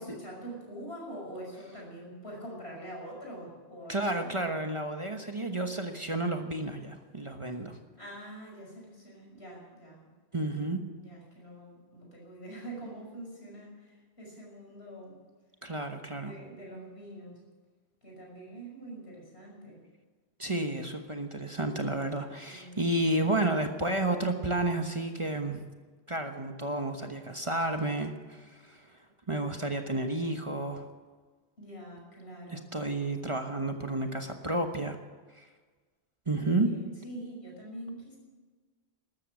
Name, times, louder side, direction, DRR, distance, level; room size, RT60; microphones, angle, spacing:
voice 1, 0.0-4.3 7.9-10.1 11.0-15.2 16.2-17.4 18.0-19.8 22.5-22.8 31.6-32.7 36.4-38.2, right 1 dB, 75° left, -2 dB, 6.3 m, -45 dB
voice 2, 3.9-7.8 10.3-10.8 15.6-16.3 20.4-25.6 26.1-28.9 29.3-30.9 32.5-35.0 35.3-35.5 36.3-36.7, right 2 dB, 30° right, 5 dB, 1.2 m, -31 dB
13.5 x 13.0 x 7.7 m, 1.4 s
omnidirectional pair, 1.1 m